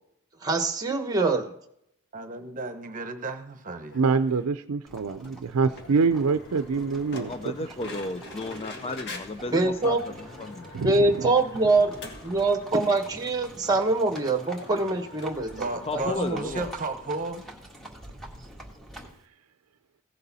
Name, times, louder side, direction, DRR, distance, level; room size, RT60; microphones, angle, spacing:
voice 1, 0.4-1.5 9.5-10.0 10.8-11.9 12.2-16.4, right 3 dB, 15° right, 6 dB, 1.3 m, -24 dB
voice 2, 2.1-4.0 15.5-17.5, right 3 dB, 40° right, 7 dB, 1.1 m, -34 dB
sound 1, 3.9-4.5 4.9-5.0 5.2-5.3 5.8-12.9 13.3-13.4 13.6-13.7 14.2-16.2, left 1 dB, 55° left, 1.7 m, -44 dB
voice 3, 3.9-7.5 10.7-11.3, right 4 dB, 75° right, 9 dB, 0.5 m, -25 dB
Livestock farm animals working animals, 4.9-19.2, right 1 dB, ahead, 1.6 m, -46 dB
voice 4, 7.1-10.7 15.9-16.7, left 3 dB, 25° left, 10 dB, 0.4 m, -34 dB
16.5 x 6.8 x 4.2 m, 0.73 s
head